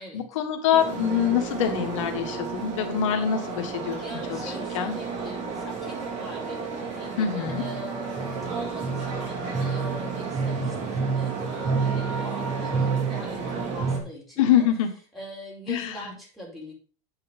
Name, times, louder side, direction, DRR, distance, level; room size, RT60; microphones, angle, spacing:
voice 1, 0.0-4.0 4.3-4.9 7.2-7.6 14.4-14.9 15.7-16.1, left 9 dB, 90° left, 5 dB, 1.5 m, -25 dB
sound 1, 0.7-14.0, right 5 dB, 50° right, 3.5 m, -30 dB
voice 2, 4.0-14.7 15.1-16.7, equal, ahead, -4 dB, 4.7 m, -41 dB
8.3 x 5.6 x 5.3 m, 0.39 s
supercardioid pair, 120°, 16 cm